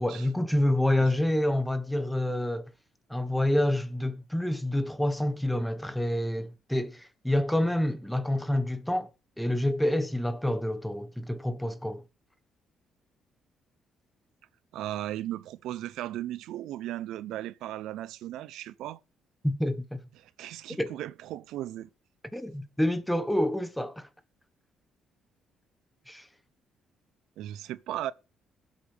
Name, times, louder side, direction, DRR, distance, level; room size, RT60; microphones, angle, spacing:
voice 1, 0.0-2.7 3.1-9.1 9.4-12.0 19.4-20.0 20.7-20.9 22.3-24.1 26.1-26.3, left 1 dB, 5° left, 1.3 m, -28 dB
voice 2, 14.7-19.0 20.2-21.9 27.4-28.1, right 13 dB, 85° right, 0.6 m, -36 dB
21.5 x 8.1 x 3.4 m
cardioid pair, 105°, 0 cm